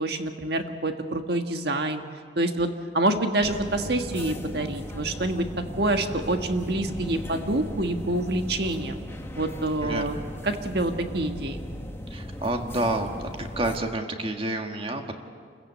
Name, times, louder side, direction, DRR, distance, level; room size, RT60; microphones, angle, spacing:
voice 1, 0.0-2.0 2.4-2.7 2.9-5.4 5.8-9.0 9.3-10.2 10.4-11.6, right 2 dB, 60° right, 6 dB, 1.6 m, -26 dB
sound 1, 3.4-13.8, equal, 15° left, 1.3 m, -37 dB
voice 2, 9.8-10.3 12.1-13.1 13.4-15.2, right 2 dB, 30° right, 4 dB, 1.7 m, -29 dB
28.5 x 15.0 x 8.6 m, 2.1 s
head